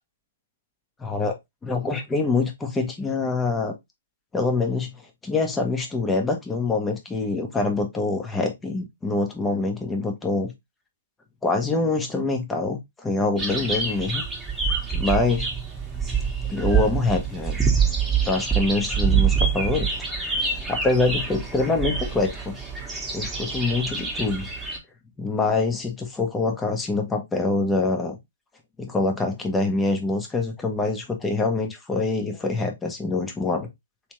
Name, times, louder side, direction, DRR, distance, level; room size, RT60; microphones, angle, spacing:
voice 1, 1.0-1.3 1.6-3.7 4.3-4.9 5.2-10.5 11.4-14.2 14.9-15.5 16.5-17.6 18.2-19.9 20.4-22.5 23.1-24.5 25.2-28.2 28.8-33.7, left 3 dB, 10° left, 0.9 m, -25 dB
sound 1, 13.4-24.8, right 6 dB, 10° right, 1.3 m, -26 dB
3.4 x 3.2 x 3.1 m
hypercardioid pair, 135°, 0 cm